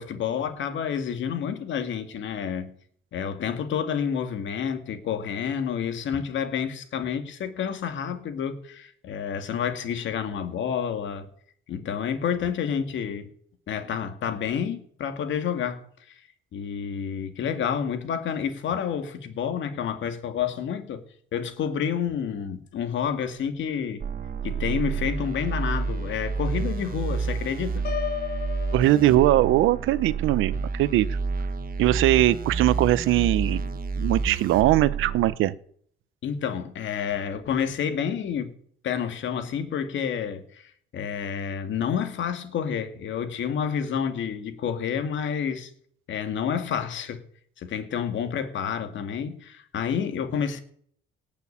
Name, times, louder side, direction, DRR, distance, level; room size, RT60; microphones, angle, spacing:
voice 1, 0.0-2.7 3.1-11.3 11.7-13.3 13.7-16.2 16.5-21.0 21.3-24.0 24.4-27.9 36.2-38.5 38.8-45.7 46.1-47.2 47.6-50.6, left 7 dB, 70° left, 2.1 m, -29 dB
sound 1, 24.0-35.4, right 5 dB, 45° right, 1.2 m, -29 dB
Piano, 27.8-29.8, left 9 dB, 50° left, 4.0 m, -34 dB
voice 2, 28.7-31.2 31.8-33.6 34.0-35.5, right 14 dB, 90° right, 0.8 m, -21 dB
18.0 x 6.5 x 8.6 m
cardioid pair, 90°, 20 cm